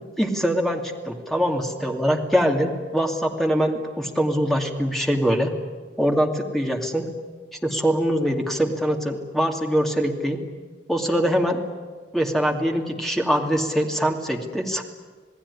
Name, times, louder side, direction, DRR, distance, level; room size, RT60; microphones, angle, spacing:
voice 1, 0.2-5.5 6.0-7.1 7.6-10.4 10.9-11.6 12.1-14.8, equal, ahead, 2 dB, 2.5 m, -23 dB
28.0 x 19.0 x 9.9 m, 1.5 s
head